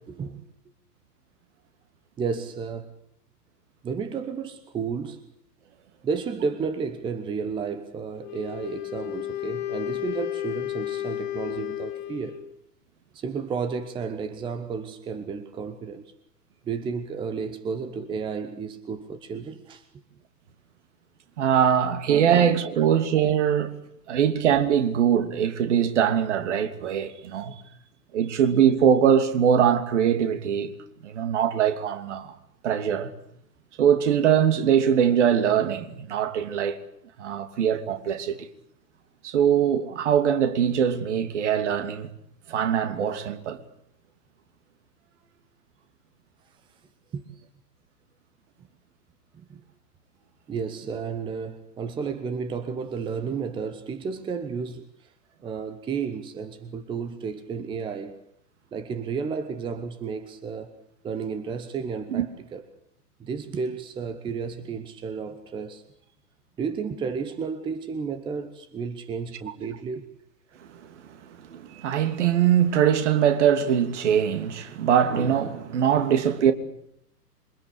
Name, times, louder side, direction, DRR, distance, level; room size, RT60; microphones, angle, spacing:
voice 1, 0.1-0.4 2.2-2.9 3.8-5.2 6.0-12.4 13.1-16.1 16.6-19.9 27.1-27.8 28.3-28.4 47.1-47.4 49.3-49.6 50.5-55.1 55.4-58.2 58.7-60.7 61.0-62.6 63.2-65.8 66.6-70.1, right 5 dB, 10° right, 1.1 m, -32 dB
Wind instrument woodwind instrument, 8.2-12.5, left 13 dB, 30° left, 2.4 m, -32 dB
voice 2, 21.4-23.7 24.1-27.5 28.1-30.7 31.0-32.3 32.6-33.1 33.8-36.8 37.2-38.4 39.2-42.1 42.5-43.6 62.1-62.3 70.6-76.5, right 8 dB, 45° right, 3.0 m, -22 dB
27.5 x 24.0 x 8.4 m
figure-of-eight pair, 115°, 48 cm